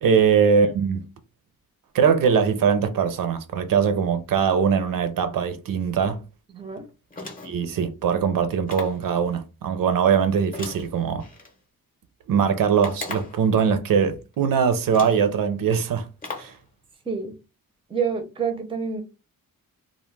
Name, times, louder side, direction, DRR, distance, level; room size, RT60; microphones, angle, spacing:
voice 1, 0.0-1.1 1.9-6.2 7.4-11.2 12.3-16.1 16.4-16.5, right 6 dB, 70° right, 0.5 m, -21 dB
voice 2, 6.5-6.9 17.1-17.3 17.9-19.0, right 6 dB, 15° right, 0.5 m, -28 dB
sound 1, 7.1-7.7 8.7-9.1 10.5-11.5 12.8-13.5 14.3-14.4 14.9-15.3 16.2-16.6, left 3 dB, 25° left, 0.7 m, -37 dB
2.2 x 2.0 x 3.1 m
wide cardioid pair, 130°, 34 cm